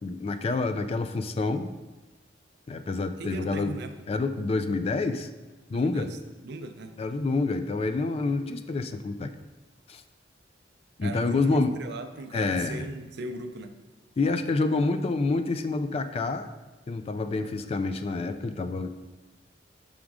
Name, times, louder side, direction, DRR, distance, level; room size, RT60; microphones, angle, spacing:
voice 1, 0.0-1.7 2.7-3.7 4.1-5.3 5.7-6.1 7.0-9.3 9.9-10.0 11.0-11.8 12.3-12.8 14.2-16.5 16.9-18.9, left 3 dB, 35° left, 9 dB, 0.3 m, -27 dB
voice 2, 3.2-4.0 5.7-6.1 6.4-6.9 11.0-13.8, right 2 dB, 65° right, 7 dB, 0.5 m, -38 dB
6.2 x 3.6 x 4.8 m, 1.2 s
head